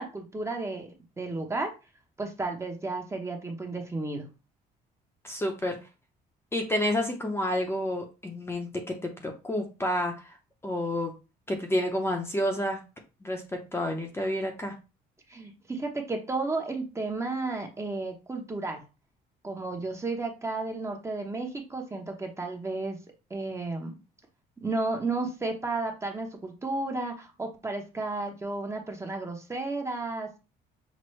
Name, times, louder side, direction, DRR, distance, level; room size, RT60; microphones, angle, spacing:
voice 1, 0.0-1.7 2.2-4.3 15.3-18.8 19.4-23.0 23.3-23.9 24.6-30.4, right 3 dB, 15° right, 3 dB, 0.9 m, -33 dB
voice 2, 5.2-5.8 6.5-10.4 10.6-11.1 11.5-12.8 13.2-14.7, left 1 dB, 15° left, 2 dB, 0.7 m, -29 dB
6.0 x 2.2 x 3.2 m, 0.29 s
cardioid pair, 110°, 17 cm